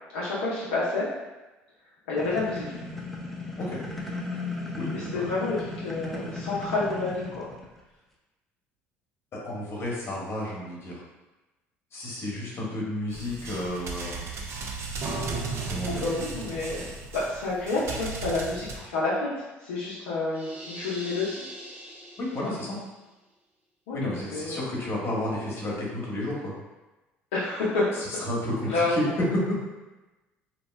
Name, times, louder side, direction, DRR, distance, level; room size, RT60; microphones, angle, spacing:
voice 1, 0.1-1.1 2.1-2.6 4.9-5.6 5.8-7.4 15.5-16.9 17.1-19.3 19.6-21.4 23.9-24.7 27.3-27.8 28.7-29.1, left 3 dB, 80° left, -7 dB, 0.6 m, -29 dB
sound 1, 2.2-7.8, left 2 dB, 5° left, 0.6 m, -36 dB
voice 2, 4.7-5.3 9.3-11.0 11.9-14.3 15.7-16.0 22.2-22.8 23.9-26.5 28.1-29.4, left 1 dB, 45° left, -4 dB, 1.1 m, -31 dB
sound 2, 13.1-18.8, right 3 dB, 50° right, 0.5 m, -35 dB
sound 3, 20.3-22.9, right 1 dB, 30° right, 1.0 m, -43 dB
2.9 x 2.1 x 3.1 m, 1.1 s
hypercardioid pair, 70°, 6 cm